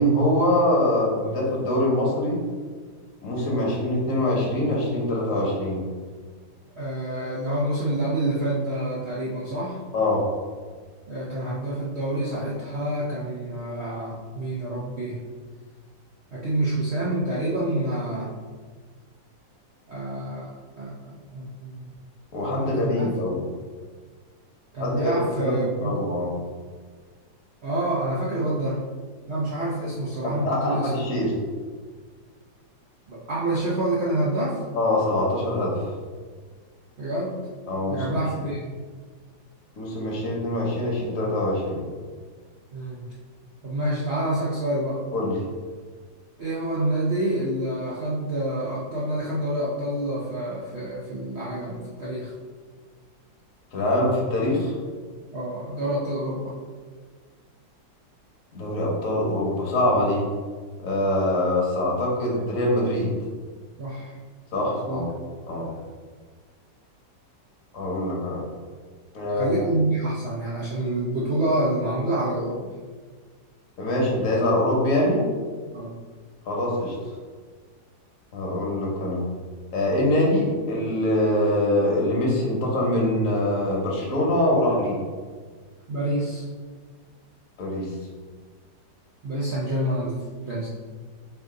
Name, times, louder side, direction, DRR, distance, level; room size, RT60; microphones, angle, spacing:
voice 1, 0.0-2.4 3.2-5.8 9.9-10.3 22.3-23.4 24.8-26.3 30.2-31.3 34.7-35.9 37.7-38.2 39.8-41.8 45.1-45.4 53.7-54.8 58.5-60.2 60.8-63.1 64.5-65.1 65.5-65.7 67.7-68.4 69.1-69.5 73.8-75.3 76.4-76.9 78.3-79.2 79.7-85.0 87.6-87.9, left 1 dB, 50° left, -3 dB, 1.2 m, -24 dB
voice 2, 6.8-9.8 11.1-15.2 16.3-18.3 19.9-21.9 22.5-23.1 24.7-26.0 27.6-28.8 29.3-30.9 33.1-34.6 37.0-37.4 37.9-38.7 42.7-43.0 43.6-45.0 46.4-52.3 55.3-56.5 63.8-64.2 64.7-65.0 69.3-72.6 75.7-75.9 85.9-86.5 89.2-90.7, right 1 dB, 85° right, -7 dB, 0.5 m, -27 dB
4.7 x 2.5 x 3.6 m, 1.6 s
omnidirectional pair, 2.0 m